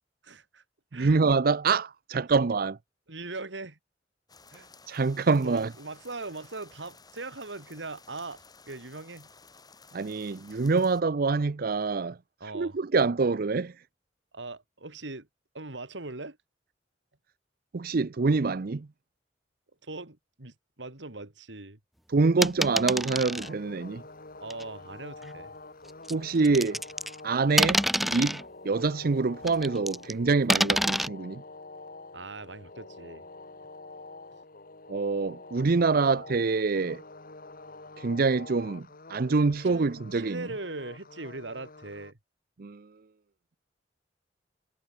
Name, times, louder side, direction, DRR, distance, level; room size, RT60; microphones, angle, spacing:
voice 1, 0.2-0.6 0.9-1.2 3.1-3.8 4.5-4.7 5.4-9.3 12.4-12.8 14.3-15.3 15.5-16.4 19.8-21.8 24.4-25.5 27.5-27.7 32.1-33.2 39.6-42.2, right 3 dB, 85° right, 2.8 m, -40 dB
voice 2, 0.9-2.8 4.9-5.7 9.9-12.2 12.5-13.7 17.7-18.9 22.1-24.0 26.1-26.8 27.2-31.4 34.9-37.0 38.0-40.5 42.6-42.9, right 4 dB, 55° right, 0.6 m, -26 dB
sound 1, 4.3-11.0, left 4 dB, 20° left, 5.4 m, -55 dB
sound 2, 22.4-23.5 24.5-24.6 26.1-27.2 27.6-28.4 29.5-30.1 30.5-31.1, equal, ahead, 0.4 m, -26 dB
sound 3, 23.3-42.1, left 3 dB, 50° left, 2.8 m, -47 dB
head